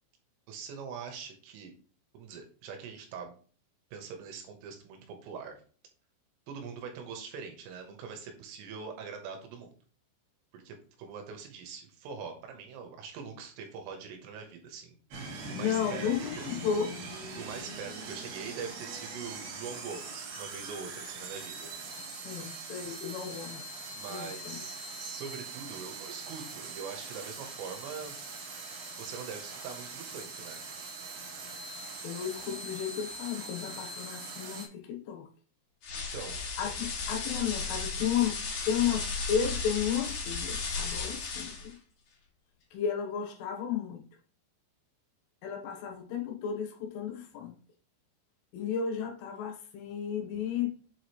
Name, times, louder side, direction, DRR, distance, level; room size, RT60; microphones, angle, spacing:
voice 1, 0.5-1.7 2.1-3.4 3.9-5.6 6.5-9.7 10.5-15.0 15.2-16.1 16.4-16.5 17.4-21.7 22.0-22.1 22.4-22.5 23.9-28.2 29.0-30.6 35.9-36.4, right 6 dB, 80° right, 4 dB, 3.6 m, -43 dB
sound 1, 15.1-34.7, right 3 dB, 60° right, 3.2 m, -42 dB
voice 2, 15.5-16.9 22.1-23.7 24.1-24.6 32.0-35.3 36.6-41.8 42.7-44.0 45.4-47.5 48.5-50.8, left 8 dB, 75° left, 3 dB, 3.6 m, -33 dB
sound 2, 35.8-41.7, left 4 dB, 50° left, 3.3 m, -35 dB
7.8 x 4.9 x 3.1 m, 0.40 s
omnidirectional pair, 6.0 m